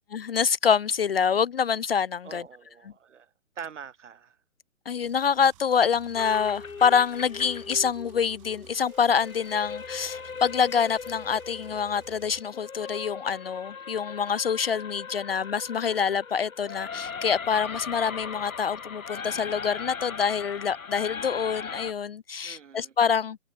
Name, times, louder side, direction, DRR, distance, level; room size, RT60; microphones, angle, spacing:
voice 1, 0.1-2.4 4.9-23.4, left 7 dB, 50° left, 0.5 m, -26 dB
voice 2, 2.2-3.3 3.6-4.4 22.4-22.9, right 7 dB, 60° right, 4.7 m, -43 dB
sound 1, 5.0-12.4, right 21 dB, 25° right, 2.5 m, -54 dB
sound 2, 6.2-21.9, left 5 dB, 90° left, 2.8 m, -39 dB
hypercardioid pair, 160°, 40 cm